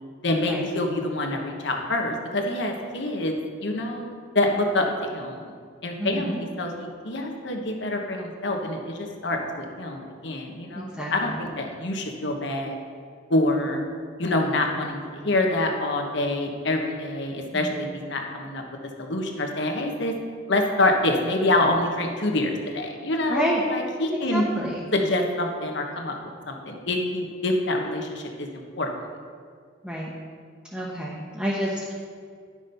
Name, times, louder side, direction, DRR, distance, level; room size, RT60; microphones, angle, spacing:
voice 1, 0.2-5.5 5.8-12.7 13.3-13.8 14.2-18.6 19.0-20.2 20.5-24.5 24.9-26.2 26.5-28.5 28.8-28.9, left 2 dB, 65° left, 3 dB, 1.2 m, -26 dB
voice 2, 6.0-6.4 10.7-11.4 17.5-17.7 23.3-23.6 24.3-24.8 29.8-30.1 30.7-31.9, right 1 dB, 5° right, -5 dB, 1.1 m, -29 dB
11.0 x 6.1 x 5.5 m, 2.2 s
head